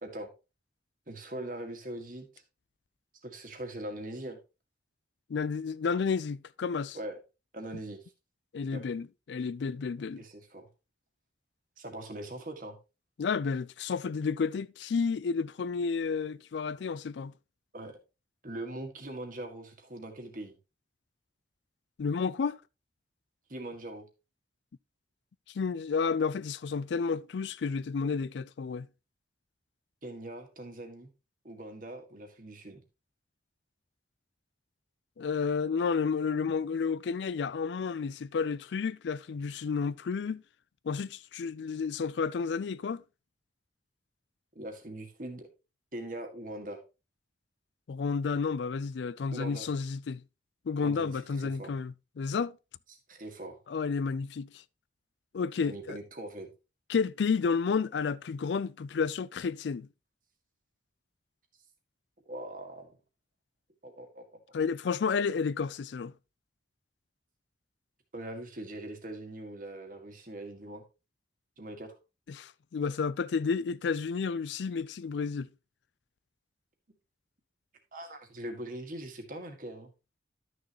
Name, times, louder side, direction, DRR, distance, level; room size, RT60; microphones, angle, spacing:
voice 1, 1.1-2.3 3.2-4.4 6.9-7.2 7.5-8.0 8.7-8.8 10.2-10.7 11.8-12.8 17.7-18.0 18.4-20.5 23.5-24.1 30.0-31.1 31.4-32.8 44.6-45.5 45.9-46.8 49.3-49.7 50.8-51.8 52.9-53.6 55.6-56.5 62.2-62.9 63.8-64.4 68.1-70.8 71.6-71.9 77.9-79.9, right 1 dB, 45° right, 1.8 m, -41 dB
voice 2, 5.3-7.0 8.5-10.2 13.2-17.3 22.0-22.6 25.5-28.9 35.2-40.4 40.8-43.0 47.9-50.2 50.7-52.5 53.7-54.5 55.3-56.0 56.9-59.9 64.5-66.1 72.3-75.5, left 5 dB, 75° left, 0.4 m, -31 dB
12.0 x 6.4 x 3.0 m
head